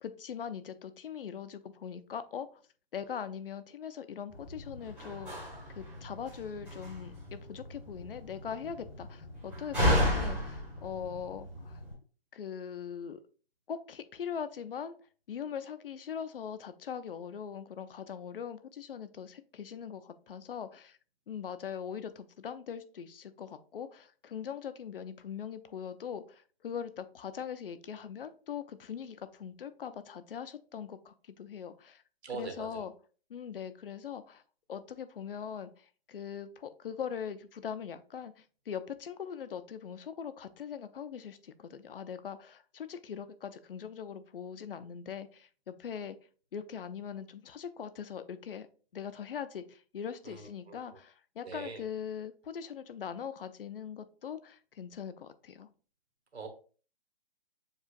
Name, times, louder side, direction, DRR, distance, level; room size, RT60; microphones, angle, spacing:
voice 1, 0.0-2.6 2.9-11.8 12.3-13.2 13.7-15.0 15.3-21.0 21.3-32.0 32.3-32.9 33.3-34.4 34.7-46.2 46.5-48.7 48.9-55.7, left 7 dB, 60° left, 12 dB, 0.5 m, -41 dB
Slam, 4.3-11.9, equal, 5° right, 0.9 m, -34 dB
voice 2, 32.2-32.8 50.2-51.0 51.4-51.8 56.3-56.5, right 4 dB, 85° right, 4 dB, 1.5 m, -42 dB
7.3 x 2.4 x 2.4 m, 0.39 s
hypercardioid pair, 165°, 32 cm